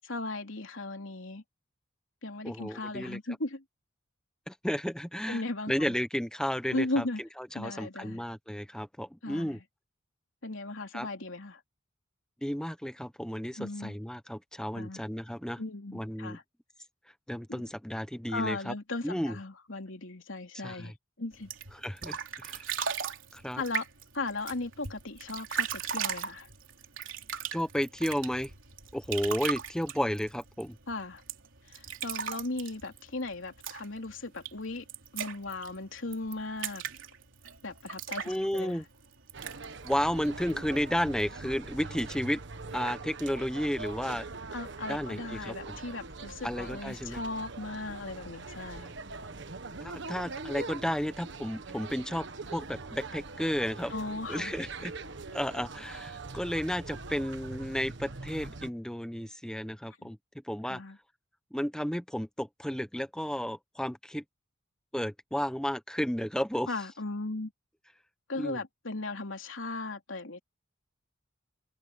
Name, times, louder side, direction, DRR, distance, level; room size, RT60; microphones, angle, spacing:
voice 1, 0.1-1.4 2.2-3.6 5.3-5.9 6.7-7.2 7.5-8.2 9.2-9.6 10.4-11.6 13.6-14.0 14.7-15.0 15.6-16.4 17.5-17.6 18.3-21.5 23.5-23.9 24.1-26.5 30.9-31.2 31.7-34.8 35.1-36.8 37.6-38.8 44.5-48.9 53.9-54.5 60.0-60.1 60.7-61.0 66.7-67.5 68.3-70.4, left 2 dB, 85° left, 3.2 m, -37 dB
voice 2, 2.4-3.2 4.5-9.6 10.9-11.1 12.4-15.6 15.9-16.4 17.3-18.7 19.0-19.4 20.6-20.9 21.7-22.7 23.3-23.6 27.5-28.5 28.9-30.8 38.2-38.8 39.8-42.4 42.7-44.3 44.9-45.8 46.4-47.2 49.8-52.3 52.5-53.9 54.3-54.9 55.3-60.2 60.5-60.8 61.5-64.2 64.9-66.7 68.3-68.6, equal, 5° left, 1.2 m, -33 dB
sound 1, 21.3-40.9, right 7 dB, 85° right, 3.4 m, -39 dB
sound 2, 39.3-58.7, right 3 dB, 65° right, 1.4 m, -42 dB
head